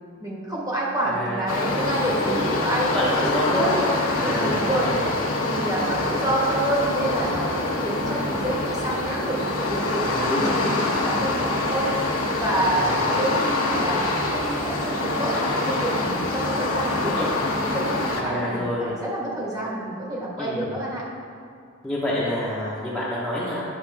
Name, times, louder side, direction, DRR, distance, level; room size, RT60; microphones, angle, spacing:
voice 1, 0.2-3.2 3.5-3.7 4.2-4.9 5.4-12.0 12.4-17.3 17.6-21.0, right 1 dB, 15° right, -5 dB, 1.6 m, -28 dB
voice 2, 1.1-3.9 4.2-5.1 5.9-6.1 10.0-10.7 11.0-11.3 12.7-13.0 17.2-17.3 18.2-18.9 20.4-20.8 21.8-23.6, left 1 dB, ahead, -10 dB, 1.2 m, -28 dB
sound 1, 1.5-18.2, left 2 dB, 70° left, 1.3 m, -25 dB
10.5 x 6.5 x 3.6 m, 2.4 s
head